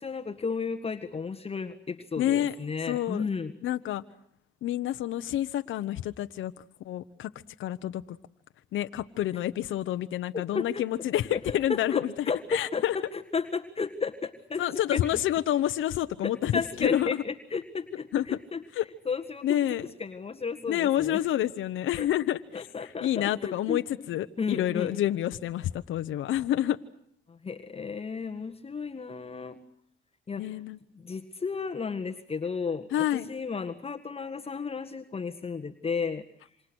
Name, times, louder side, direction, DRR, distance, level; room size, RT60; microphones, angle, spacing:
voice 1, 0.0-3.5 10.3-10.8 11.3-14.6 14.9-15.0 16.2-18.6 19.1-19.6 20.0-21.2 22.0-22.1 22.5-23.8 24.4-24.9 27.3-29.6 30.3-30.4 31.0-36.5, left 5 dB, 30° left, 5 dB, 1.7 m, -33 dB
voice 2, 2.2-2.5 2.9-3.2 3.6-4.0 4.6-6.5 6.8-7.3 7.6-8.2 8.7-13.0 14.6-17.2 18.1-18.4 18.7-18.8 19.4-19.8 20.7-26.8 30.4-30.8 32.9-33.3, left 12 dB, 80° left, 8 dB, 1.0 m, -28 dB
28.0 x 26.5 x 6.3 m, 0.70 s
cardioid pair, 90°, 20 cm